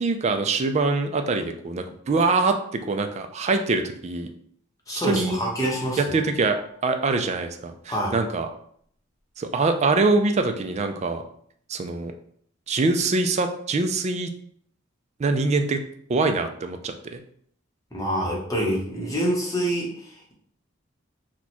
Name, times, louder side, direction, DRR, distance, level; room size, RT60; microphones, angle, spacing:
voice 1, 0.0-4.3 4.9-5.4 6.0-8.5 9.4-11.2 11.7-12.1 12.7-14.3 15.2-15.8 16.1-17.2, right 3 dB, 35° right, 6 dB, 0.3 m, -24 dB
voice 2, 4.9-6.1 7.9-8.1 17.9-20.3, right 1 dB, 15° left, -3 dB, 0.9 m, -26 dB
sound 1, 5.6-7.1, left 7 dB, 65° right, 1.1 m, -42 dB
2.9 x 2.3 x 4.2 m, 0.64 s
head